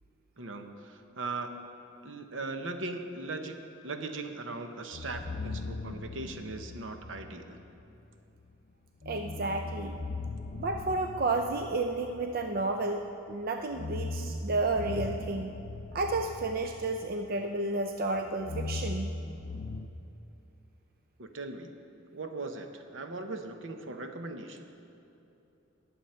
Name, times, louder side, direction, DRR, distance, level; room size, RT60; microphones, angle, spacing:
voice 1, 0.4-1.6 2.0-7.6 21.2-21.7 22.1-24.6, right 3 dB, 75° right, 6 dB, 0.9 m, -39 dB
sound 1, 4.9-7.8 9.0-12.9 13.6-17.6 17.9-19.9, left 3 dB, 35° left, 0.4 m, -39 dB
voice 2, 9.1-10.0 10.5-15.5 15.9-19.1, right 2 dB, 50° right, 5 dB, 0.5 m, -31 dB
20.0 x 7.1 x 4.4 m, 2.9 s
head